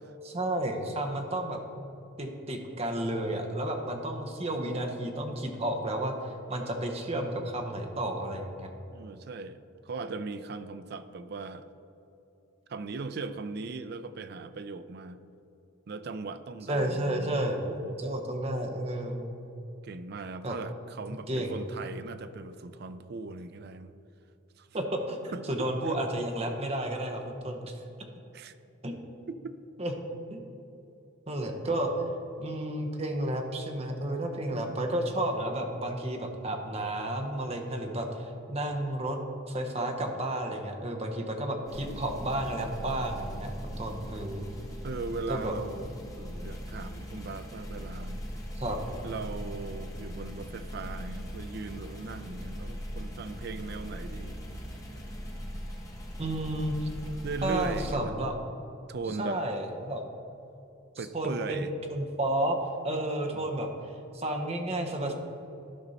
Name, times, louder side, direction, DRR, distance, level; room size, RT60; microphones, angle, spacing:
voice 1, 0.2-1.6 2.2-8.7 16.7-17.7 18.0-19.3 20.4-20.6 21.3-21.6 24.7-27.8 28.8-28.9 29.8-29.9 30.3-30.4 31.3-31.9 32.4-44.5 45.3-45.5 48.5-48.8 56.2-56.9 57.4-58.4 59.2-60.0 61.1-61.6 61.9-62.6 62.8-63.7 64.1-65.1, right 1 dB, 30° right, 3 dB, 0.8 m, -32 dB
voice 2, 8.9-11.7 12.7-15.2 15.9-18.0 19.8-23.9 24.6-24.7 25.3-26.0 28.3-28.6 29.3-29.6 31.7-31.8 44.8-48.2 49.0-54.4 57.2-58.1 58.9-59.4 61.0-61.7 63.3-63.5, right 4 dB, 50° right, 11 dB, 0.4 m, -39 dB
sound 1, 41.7-57.9, equal, 15° left, 1.1 m, -40 dB
12.5 x 5.3 x 4.1 m, 2.9 s
head